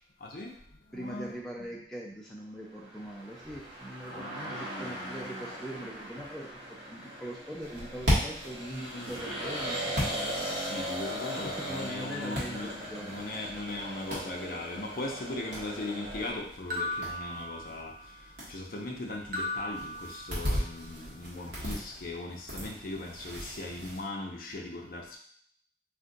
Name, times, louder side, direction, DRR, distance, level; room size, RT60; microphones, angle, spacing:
voice 1, 0.2-0.6 0.9-1.7 4.1-5.5 8.7-9.2 10.3-25.2, left 2 dB, 50° left, 0 dB, 0.5 m, -39 dB
voice 2, 0.9-6.6 6.9-10.4 11.4-13.2, equal, 5° left, -4 dB, 0.3 m, -41 dB
sound 1, 2.8-16.3, equal, 25° right, 0.9 m, -39 dB
sound 2, 7.6-24.0, equal, 70° right, 1.3 m, -38 dB
sound 3, 16.7-18.2 19.3-20.8, left 1 dB, 50° right, 0.5 m, -37 dB
2.5 x 2.4 x 3.8 m, 0.62 s
head